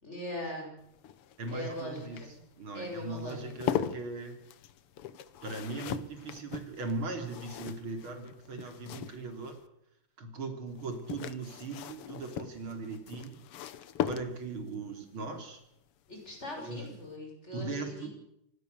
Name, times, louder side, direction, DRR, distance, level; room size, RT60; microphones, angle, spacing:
voice 1, 0.0-0.7 1.0-1.1 1.5-2.4 2.7-3.7 16.1-18.1, left 1 dB, 30° left, 1 dB, 6.7 m, -41 dB
sound 1, 0.8-9.6 10.8-14.7 16.3-16.6 16.9-17.0, left 10 dB, 85° left, 1.9 m, -39 dB
voice 2, 1.4-2.2 2.6-4.4 5.4-9.6 10.2-13.4 14.0-15.6 16.6-16.9 17.5-18.1, right 3 dB, 70° right, 7 dB, 3.9 m, -39 dB
25.5 x 19.0 x 6.9 m, 0.78 s
omnidirectional pair, 2.4 m